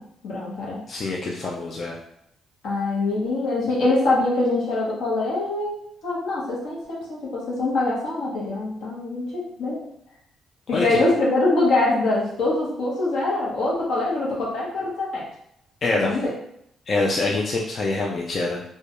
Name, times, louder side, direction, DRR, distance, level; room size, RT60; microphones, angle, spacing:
voice 1, 0.0-0.8 2.6-9.9 10.7-15.3 15.9-16.3, left 2 dB, 80° left, -5 dB, 0.8 m, -24 dB
voice 2, 0.9-2.0 10.7-11.0 15.8-16.2 16.9-18.6, left 2 dB, 45° left, -2 dB, 0.3 m, -25 dB
2.2 x 2.1 x 2.8 m, 0.75 s
cardioid pair, 120°, 0 cm